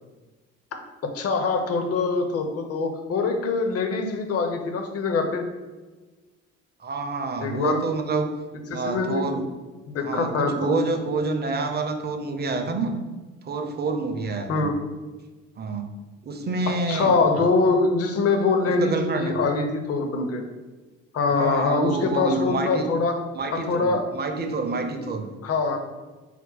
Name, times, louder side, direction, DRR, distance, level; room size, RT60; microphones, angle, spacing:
voice 1, 1.0-5.5 7.4-7.8 8.7-9.3 9.9-10.7 14.5-14.8 16.9-20.4 21.1-23.2 23.7-24.1 25.4-25.9, left 4 dB, 40° left, 5 dB, 0.7 m, -23 dB
voice 2, 6.8-8.3 8.7-9.4 10.0-12.9 13.4-14.7 15.6-15.9 16.2-17.5 18.7-19.4 21.3-22.9 23.3-25.2, right 3 dB, 25° right, 6 dB, 0.6 m, -28 dB
4.4 x 2.1 x 3.9 m, 1.3 s
hypercardioid pair, 50°, 37 cm